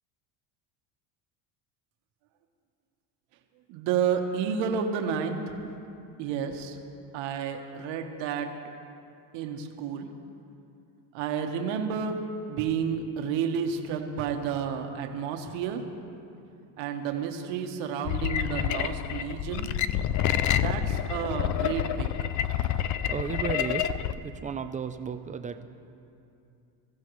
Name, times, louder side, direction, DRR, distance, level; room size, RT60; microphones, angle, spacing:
voice 1, 3.7-5.5 6.2-6.8 7.1-8.5 9.3-10.1 11.1-12.2 12.5-15.8 16.8-19.7 20.5-22.1, right 7 dB, 70° right, 4 dB, 1.4 m, -31 dB
sound 1, 18.1-24.1, left 10 dB, 40° left, 0.4 m, -28 dB
voice 2, 23.1-23.9 24.2-25.6, right 6 dB, 15° right, 8 dB, 0.5 m, -33 dB
21.5 x 14.5 x 3.2 m, 2.6 s
cardioid pair, 125°, 47 cm